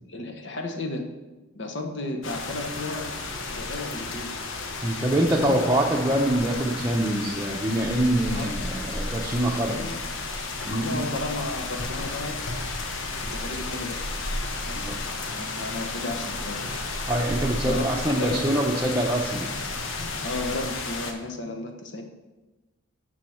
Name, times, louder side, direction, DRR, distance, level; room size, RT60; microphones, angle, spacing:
voice 1, 0.1-1.0 1.5-3.2 3.5-4.3 8.3-8.5 9.7-10.1 10.7-12.4 13.2-14.0 14.6-15.0 15.3-16.7 17.7-17.9 18.2-18.5 20.2-22.0, left 2 dB, 60° left, 4 dB, 1.0 m, -33 dB
sound 1, 2.2-21.1, left 3 dB, 85° left, 1.1 m, -32 dB
voice 2, 4.8-9.8 10.6-11.0 14.8-15.0 17.1-19.5, right 1 dB, 15° right, -2 dB, 0.7 m, -25 dB
7.5 x 6.3 x 6.3 m, 1.1 s
head